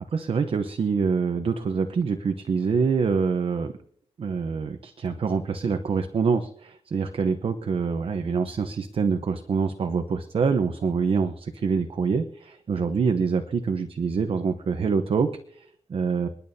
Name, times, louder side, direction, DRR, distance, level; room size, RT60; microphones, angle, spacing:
voice 1, 0.1-3.7 4.2-16.3, right 5 dB, 60° right, 7 dB, 0.9 m, -25 dB
29.5 x 10.5 x 2.8 m, 0.62 s
wide cardioid pair, 145°, 11 cm